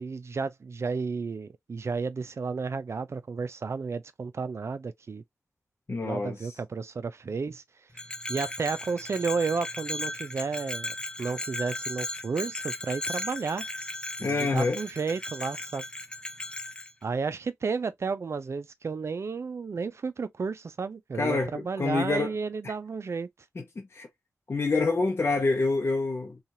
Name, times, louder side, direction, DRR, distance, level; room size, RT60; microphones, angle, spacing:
voice 1, 0.0-5.2 5.9-7.6 8.3-13.7 14.2-15.8 17.0-23.3, right 4 dB, 60° right, 0.4 m, -32 dB
voice 2, 5.9-6.5 14.2-14.8 21.2-22.3 22.6-22.7 23.6-24.1 24.5-26.4, left 3 dB, 50° left, 0.7 m, -27 dB
Bell, 7.9-16.9, left 1 dB, 15° left, 0.5 m, -36 dB
2.9 x 2.4 x 2.5 m
cardioid pair, 55°, 5 cm